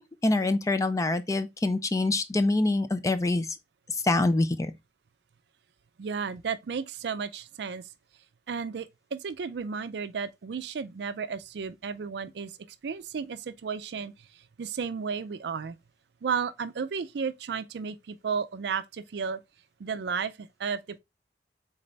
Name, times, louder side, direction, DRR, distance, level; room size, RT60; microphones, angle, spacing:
voice 1, 0.0-3.6 4.0-4.7, left 2 dB, 20° left, 0.4 m, -25 dB
voice 2, 6.0-7.9 8.5-12.5 12.8-14.1 14.6-15.8 16.2-19.4 19.8-21.0, right 6 dB, 70° right, 0.4 m, -33 dB
4.0 x 3.9 x 3.2 m
head